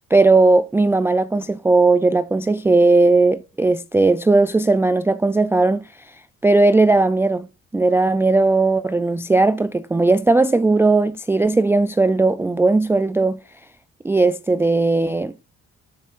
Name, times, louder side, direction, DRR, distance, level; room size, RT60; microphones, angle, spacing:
voice 1, 0.1-5.9 6.4-7.5 7.7-13.4 14.0-15.3, right 3 dB, 10° right, 0.3 m, -17 dB
13.0 x 5.5 x 2.5 m
cardioid pair, 90°, 30 cm